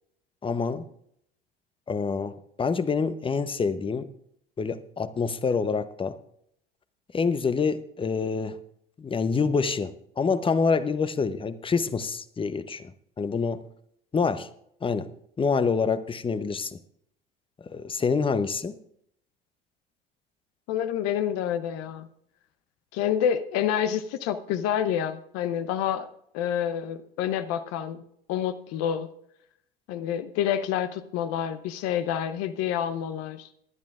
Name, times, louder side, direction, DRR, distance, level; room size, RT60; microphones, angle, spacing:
voice 1, 0.4-0.9 1.9-4.1 4.6-6.2 7.1-8.6 9.0-12.9 13.2-13.7 14.1-14.5 14.8-16.8 17.6-18.8, left 5 dB, 15° left, 13 dB, 0.8 m, -27 dB
voice 2, 20.7-22.1 22.9-26.1 26.3-28.0 28.3-29.1 29.9-33.5, left 9 dB, 55° left, 11 dB, 0.8 m, -28 dB
20.5 x 10.5 x 2.5 m, 0.72 s
hypercardioid pair, 70°, 30 cm